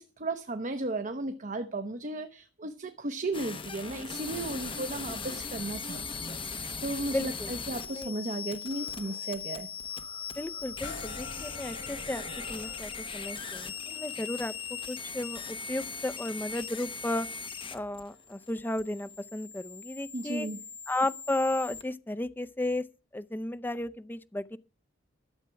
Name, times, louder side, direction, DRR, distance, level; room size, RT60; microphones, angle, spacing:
voice 1, 0.0-9.7 20.1-20.6, right 2 dB, 40° right, 0.9 m, -35 dB
sound 1, 3.3-21.8, left 5 dB, 25° left, 1.0 m, -39 dB
sound 2, 3.8-7.6 8.7-9.4 9.7-14.6, right 2 dB, 60° right, 1.9 m, -52 dB
voice 2, 7.1-7.5 8.0-8.1 10.4-12.2 12.5-17.3 17.7-20.5 20.9-22.8 23.1-24.6, left 1 dB, 10° left, 0.5 m, -34 dB
sound 3, 10.8-18.4 19.0-19.1, left 4 dB, 70° left, 3.6 m, -50 dB
12.5 x 7.4 x 5.7 m
head